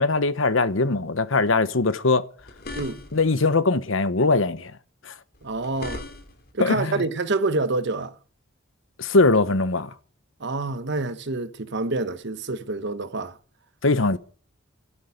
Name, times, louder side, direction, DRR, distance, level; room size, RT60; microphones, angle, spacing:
voice 1, 0.0-2.3 3.1-4.7 5.0-5.1 6.6-7.0 9.0-9.9 13.8-14.2, left 3 dB, 70° left, 1.1 m, -21 dB
sound 1, 2.4-3.3 5.3-6.5, left 2 dB, 50° left, 3.3 m, -38 dB
voice 2, 5.4-6.0 6.5-8.1 10.4-13.4, right 3 dB, 60° right, 1.1 m, -27 dB
12.5 x 8.9 x 9.6 m
head